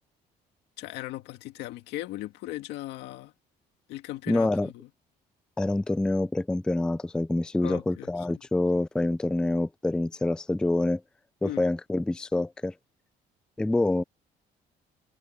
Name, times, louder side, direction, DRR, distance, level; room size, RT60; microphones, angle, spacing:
voice 1, 0.8-3.3 3.9-4.7 7.6-8.1 11.4-11.6, left 16 dB, 90° left, 2.0 m, -37 dB
voice 2, 4.3-4.7 5.6-11.0 11.4-12.7 13.6-14.0, left 2 dB, 5° left, 0.3 m, -26 dB
cardioid pair, 110°, 17 cm